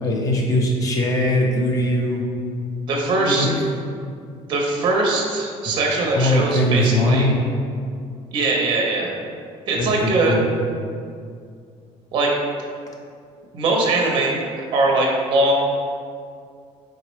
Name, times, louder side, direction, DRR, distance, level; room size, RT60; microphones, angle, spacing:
voice 1, 0.0-2.2 3.2-3.5 6.2-7.3 9.7-10.4, left 1 dB, 25° left, -1 dB, 0.5 m, -20 dB
voice 2, 2.9-3.5 4.5-7.3 8.3-9.1 9.7-10.4 12.1-12.4 13.5-14.3 14.7-15.5, right 2 dB, 35° right, -1 dB, 0.6 m, -21 dB
4.1 x 3.7 x 3.1 m, 2.3 s
cardioid pair, 170°, 14 cm